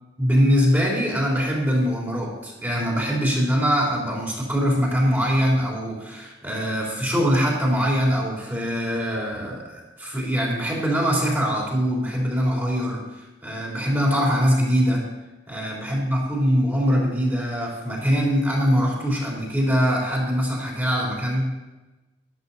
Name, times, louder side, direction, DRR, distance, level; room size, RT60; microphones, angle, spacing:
voice 1, 0.2-13.0 13.4-15.1 15.5-21.5, equal, 10° right, -3 dB, 3.3 m, -22 dB
13.0 x 11.5 x 4.1 m, 1.1 s
head